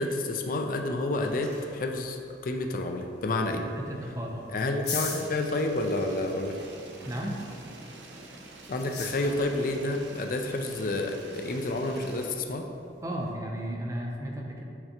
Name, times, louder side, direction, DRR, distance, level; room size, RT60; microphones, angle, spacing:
voice 1, 0.0-2.2 2.4-3.6 4.5-6.6 8.7-12.7, left 2 dB, 50° left, 4 dB, 0.4 m, -29 dB
sound 1, 0.8-13.3, left 5 dB, 65° left, 1.3 m, -45 dB
voice 2, 3.7-4.5 7.1-7.4 13.0-14.6, right 1 dB, 20° right, 0 dB, 0.6 m, -34 dB
sound 2, 5.0-12.3, right 2 dB, 85° right, 0.7 m, -47 dB
7.8 x 4.3 x 2.9 m, 2.6 s
head